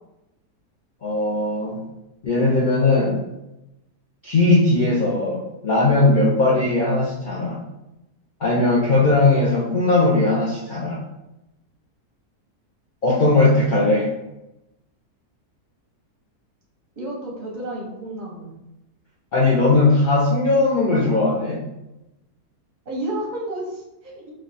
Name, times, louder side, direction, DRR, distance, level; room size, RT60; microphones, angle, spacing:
voice 1, 1.0-1.8 2.2-3.2 4.2-7.6 8.4-11.0 13.0-14.1 19.3-21.6, left 2 dB, 60° left, -5 dB, 0.5 m, -18 dB
voice 2, 17.0-18.5 22.9-24.3, right 1 dB, 40° right, -3 dB, 0.7 m, -31 dB
3.2 x 2.4 x 4.0 m, 0.93 s
omnidirectional pair, 1.7 m